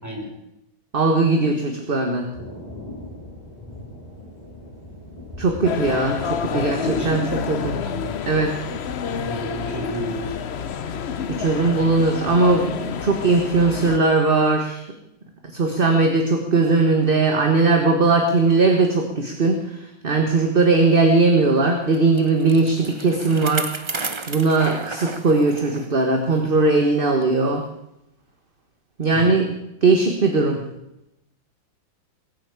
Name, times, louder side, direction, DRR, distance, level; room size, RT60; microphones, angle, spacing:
voice 1, 0.9-2.3 5.4-7.8 8.3-8.5 11.3-14.8 15.5-19.8 20.0-27.6 29.0-29.5 29.8-30.6, right 3 dB, 30° right, 4 dB, 1.4 m, -19 dB
Thunder, 2.3-11.3, left 1 dB, 20° left, 6.3 m, -41 dB
sound 1, 5.6-14.0, left 7 dB, 70° left, 0.6 m, -29 dB
voice 2, 6.5-7.5 7.8-8.1 9.2-10.3 29.1-29.5, equal, 10° right, -1 dB, 4.5 m, -31 dB
Bicycle, 21.9-25.9 26.3-26.4 27.2-27.3, right 3 dB, 50° right, 0.3 m, -32 dB
20.5 x 8.5 x 8.2 m, 0.86 s
omnidirectional pair, 2.2 m